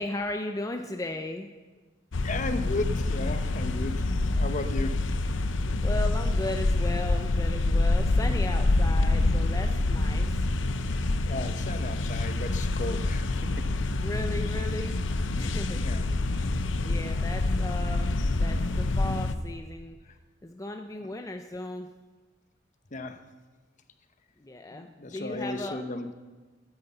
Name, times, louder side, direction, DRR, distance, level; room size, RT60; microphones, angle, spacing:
voice 1, 0.0-1.5 5.8-10.5 14.0-15.0 15.4-15.8 16.8-20.0 20.4-21.9 24.4-25.8, left 2 dB, 20° left, 5 dB, 0.6 m, -36 dB
sound 1, 2.1-19.4, left 2 dB, 85° left, 0.7 m, -26 dB
voice 2, 2.2-5.0 11.2-13.7 15.4-15.5 15.8-16.0 16.5-16.6 22.9-23.2 24.7-26.1, left 2 dB, 40° left, 8 dB, 0.9 m, -35 dB
9.9 x 9.5 x 7.9 m, 1.3 s
head